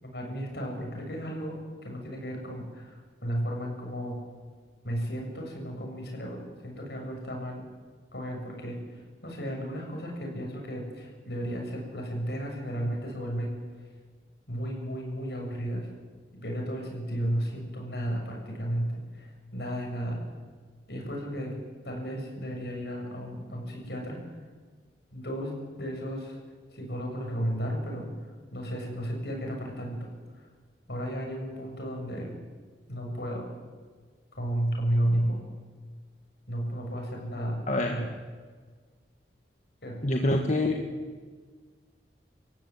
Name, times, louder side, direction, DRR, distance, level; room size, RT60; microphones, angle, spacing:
voice 1, 0.0-1.6 1.8-4.2 4.8-7.6 8.1-13.6 14.5-15.9 16.3-20.2 20.9-21.6 21.8-24.2 25.1-26.4 26.7-28.1 28.5-30.1 30.9-32.3 32.9-33.5 34.3-35.4 36.5-38.1 39.8-40.0, equal, 70° left, 1 dB, 7.2 m, -33 dB
voice 2, 37.7-38.0 40.0-40.9, left 1 dB, 40° left, 2 dB, 1.7 m, -26 dB
27.0 x 15.5 x 9.8 m, 1.5 s
head